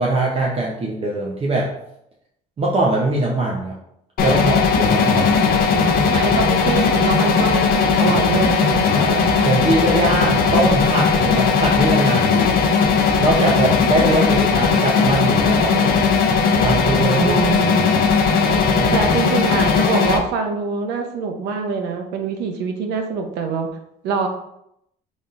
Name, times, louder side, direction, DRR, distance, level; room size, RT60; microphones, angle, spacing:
voice 1, 0.0-1.7 2.6-3.7 4.2-6.4 8.9-12.7 13.2-17.3 18.4-18.9, right 2 dB, 35° right, -3 dB, 0.7 m, -22 dB
sound 1, 4.2-20.2, left 5 dB, 60° left, 0.6 m, -17 dB
voice 2, 6.0-8.9 17.1-18.0 18.9-23.7 24.0-24.3, right 5 dB, 85° right, 5 dB, 0.7 m, -24 dB
4.1 x 3.4 x 2.5 m, 0.77 s
cardioid pair, 110°, 17 cm